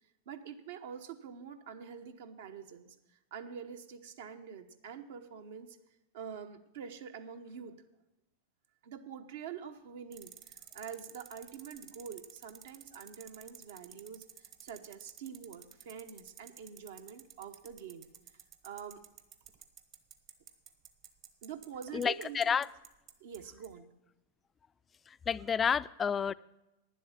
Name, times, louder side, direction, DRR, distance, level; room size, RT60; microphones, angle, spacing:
voice 1, 0.3-3.0 3.3-5.8 6.1-7.8 8.8-18.1 18.6-19.0 21.4-22.6 23.2-23.9, right 7 dB, 70° right, 7 dB, 1.0 m, -46 dB
sound 1, 10.1-23.4 23.6-23.7, right 9 dB, 45° right, 1.1 m, -52 dB
voice 2, 21.9-22.7 25.3-26.3, left 7 dB, 25° left, 17 dB, 0.3 m, -30 dB
10.0 x 7.7 x 7.2 m, 0.94 s
hypercardioid pair, 100°, 0 cm